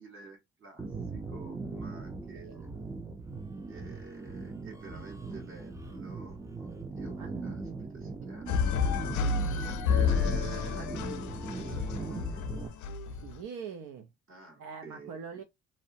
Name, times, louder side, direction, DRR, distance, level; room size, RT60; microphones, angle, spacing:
voice 1, 0.0-2.7 3.7-8.6 9.1-12.4 14.3-15.4, right 3 dB, 45° right, 1.3 m, -49 dB
sound 1, 0.8-12.7, right 3 dB, 10° right, 0.4 m, -40 dB
sound 2, 8.5-13.3, left 6 dB, 75° left, 0.5 m, -30 dB
voice 2, 13.1-14.1 14.6-15.4, right 6 dB, 80° right, 0.5 m, -43 dB
2.5 x 2.1 x 2.6 m
cardioid pair, 90°, 30 cm